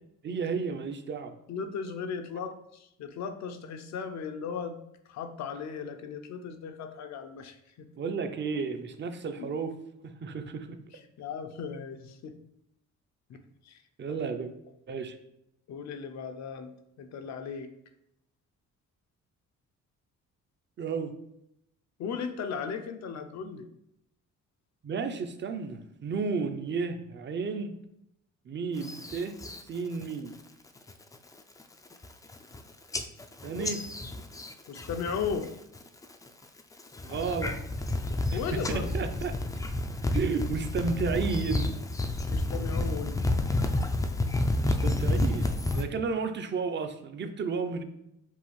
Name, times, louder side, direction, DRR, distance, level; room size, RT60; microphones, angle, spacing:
voice 1, 0.2-1.3 8.0-9.7 10.0-10.8 14.0-14.5 14.9-15.2 20.8-21.1 23.4-23.5 24.8-27.7 28.5-29.4 29.7-30.3 33.4-33.8 37.0-37.6 38.3-39.4 40.1-41.7 44.6-47.8, right 5 dB, 40° right, 8 dB, 0.5 m, -32 dB
voice 2, 1.5-4.8 5.1-7.9 9.4-9.5 10.9-12.3 13.3-13.8 14.1-14.2 15.7-16.7 17.0-17.7 22.0-23.7 34.7-35.5 38.3-38.9 42.3-43.2, left 6 dB, 65° left, 7 dB, 0.6 m, -36 dB
sound 1, 28.8-29.6 30.0-30.4 30.8-31.1 31.6-31.7 31.9-32.6 32.9-35.5 35.7-36.3 36.8-45.8, left 2 dB, 10° left, 0.3 m, -30 dB
5.4 x 2.4 x 3.1 m, 0.80 s
cardioid pair, 90°, 30 cm